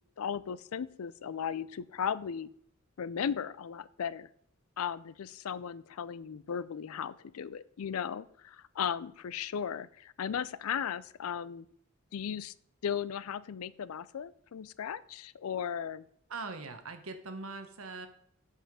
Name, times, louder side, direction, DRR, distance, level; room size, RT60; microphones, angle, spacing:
voice 1, 0.2-2.5 3.0-4.3 4.8-11.7 12.1-12.5 12.8-16.0, left 7 dB, 90° left, 18 dB, 0.4 m, -36 dB
voice 2, 16.3-18.1, right 3 dB, 80° right, 8 dB, 1.2 m, -41 dB
7.8 x 5.7 x 6.1 m, 0.65 s
head